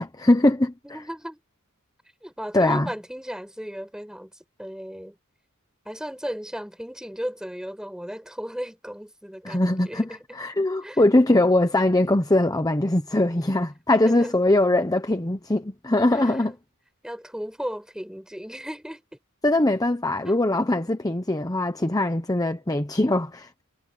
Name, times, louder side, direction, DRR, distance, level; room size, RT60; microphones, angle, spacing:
voice 1, 0.0-0.7 2.5-2.9 9.4-16.6 19.4-23.6, left 1 dB, 15° left, 1.0 m, -21 dB
voice 2, 0.8-1.4 2.2-4.3 4.6-5.2 5.8-10.2 10.8-11.0 14.1-14.3 16.1-16.6 17.0-19.0 20.3-20.4, equal, 5° right, 6.3 m, -35 dB
head